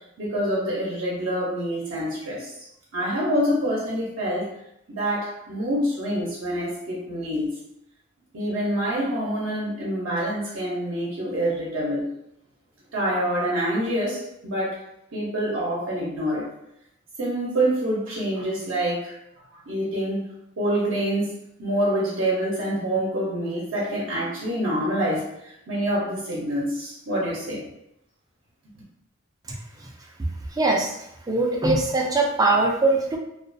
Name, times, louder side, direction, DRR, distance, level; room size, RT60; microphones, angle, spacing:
voice 1, 0.2-2.5 2.9-4.5 4.9-7.5 8.3-12.0 12.9-14.8 15.1-16.5 17.2-19.1 19.7-20.2 20.6-21.3 21.6-27.6, right 1 dB, 70° right, -6 dB, 0.6 m, -26 dB
voice 2, 30.6-30.9 31.3-33.2, right 2 dB, 20° right, 0 dB, 0.3 m, -21 dB
2.3 x 2.3 x 2.5 m, 0.81 s
head